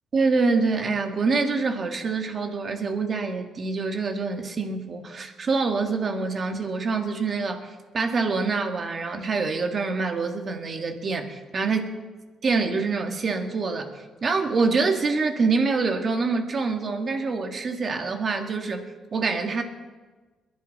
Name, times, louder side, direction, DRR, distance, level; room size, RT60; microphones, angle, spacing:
voice 1, 0.1-12.0 12.4-13.9 14.2-18.9 19.1-19.6, right 4 dB, 45° right, 4 dB, 2.0 m, -25 dB
22.0 x 11.0 x 4.2 m, 1.3 s
cardioid pair, 90°, 0 cm